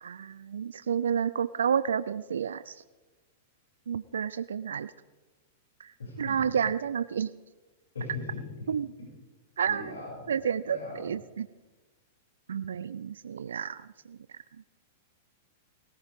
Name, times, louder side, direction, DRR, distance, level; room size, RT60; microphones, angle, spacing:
voice 1, 0.0-2.7 3.9-4.9 6.2-7.3 8.7-8.9 9.6-9.9 10.3-11.5 12.5-13.8 14.1-14.2, right 7 dB, 85° right, 14 dB, 0.4 m, -30 dB
voice 2, 6.0-6.6 7.9-8.6 9.7-10.3 10.6-11.1, left 3 dB, 90° left, -3 dB, 6.7 m, -39 dB
19.5 x 17.5 x 3.7 m, 1.2 s
hypercardioid pair, 115°, 0 cm